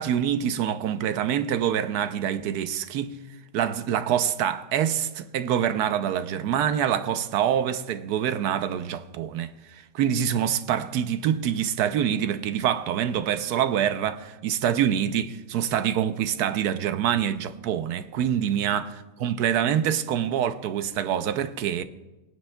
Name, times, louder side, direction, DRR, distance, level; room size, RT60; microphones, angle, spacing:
voice 1, 0.0-3.2 3.5-18.9 19.2-21.8, right 9 dB, 70° right, 1.0 m, -25 dB
23.5 x 9.5 x 2.2 m
omnidirectional pair, 2.1 m